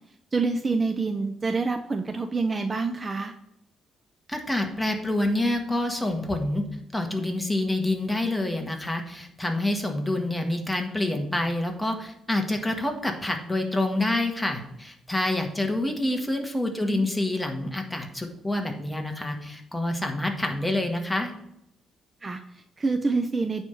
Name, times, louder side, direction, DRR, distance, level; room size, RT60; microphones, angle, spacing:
voice 1, 0.3-3.3 16.8-17.1 22.2-23.6, right 4 dB, 30° right, 7 dB, 0.6 m, -27 dB
voice 2, 4.3-6.6 6.9-21.3, left 1 dB, 5° left, 3 dB, 1.6 m, -27 dB
9.1 x 3.6 x 6.9 m, 0.80 s
cardioid pair, 90°, 0 cm